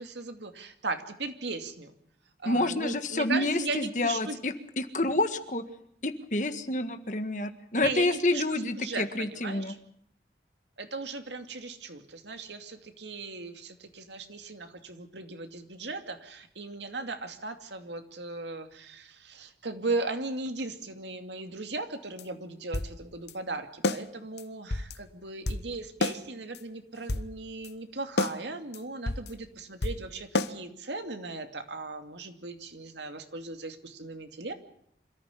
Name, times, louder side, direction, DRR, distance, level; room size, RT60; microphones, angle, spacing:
voice 1, 0.0-1.9 2.4-4.4 7.7-9.7 10.8-34.5, right 3 dB, 90° right, 7 dB, 2.6 m, -37 dB
voice 2, 2.4-5.6 6.0-9.7, left 2 dB, 45° left, 9 dB, 1.7 m, -28 dB
sound 1, 22.2-22.3 22.7-22.9 23.3-23.4 23.8-24.0 24.4-24.5 24.7-25.0 25.5-25.7 26.0-26.2 26.5-26.6 26.9-27.3 27.6-27.7 28.2-28.4 28.7-28.8 29.1-29.3 29.8-30.0 30.3-30.5, left 2 dB, 75° left, 1.1 m, -29 dB
26.5 x 14.5 x 8.4 m, 0.71 s
head